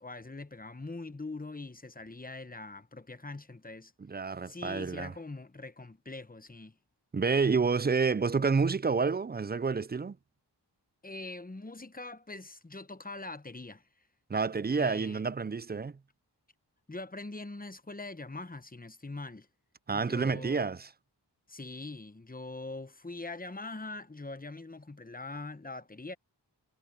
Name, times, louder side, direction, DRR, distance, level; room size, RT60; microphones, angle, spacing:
voice 1, 0.0-3.9 4.4-6.8 11.0-13.9 14.7-15.2 16.9-19.5 19.9-20.7 21.5-26.1, left 2 dB, 20° left, 0.9 m, -43 dB
voice 2, 4.0-5.1 7.1-10.2 14.3-16.0 19.9-20.9, right 5 dB, 25° right, 0.3 m, -29 dB
wide cardioid pair, 55°, 42 cm